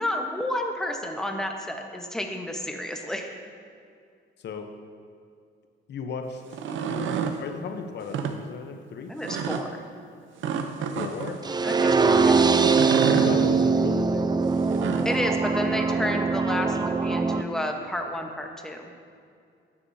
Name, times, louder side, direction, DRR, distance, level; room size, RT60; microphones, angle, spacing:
voice 1, 0.0-3.4 9.1-9.7 11.6-12.4 15.0-18.9, left 1 dB, 5° left, 2 dB, 1.0 m, -31 dB
voice 2, 5.9-6.6 6.9-9.1 10.9-11.4 13.1-14.3, left 5 dB, 60° left, 5 dB, 0.8 m, -35 dB
sound 1, 6.4-7.4 8.0-8.3 9.2-9.6 10.4-11.4 12.6-13.3 14.5-15.2, right 7 dB, 75° right, 0.7 m, -29 dB
sound 2, 11.4-17.4, right 4 dB, 20° right, 0.5 m, -22 dB
13.0 x 9.8 x 2.7 m, 2.3 s
cardioid pair, 90°, 20 cm